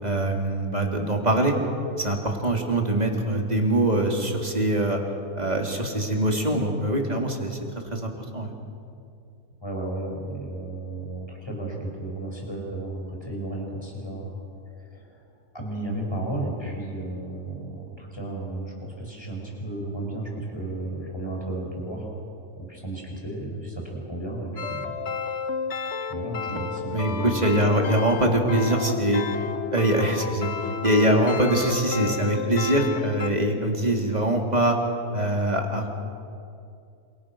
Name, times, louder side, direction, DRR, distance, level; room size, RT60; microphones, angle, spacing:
voice 1, 0.0-1.6 2.0-5.0 5.3-7.6 7.9-8.5 26.5-26.6 26.9-29.2 29.7-30.5 30.8-34.8 35.1-35.9, right 1 dB, 25° right, 1 dB, 3.3 m, -23 dB
voice 2, 9.6-14.3 14.8-15.2 15.5-25.0 26.0-27.4, right 2 dB, 15° left, -1 dB, 6.3 m, -33 dB
sound 1, 24.6-33.3, left 5 dB, 50° left, 1.2 m, -32 dB
29.0 x 27.0 x 6.3 m, 2.5 s
omnidirectional pair, 1.5 m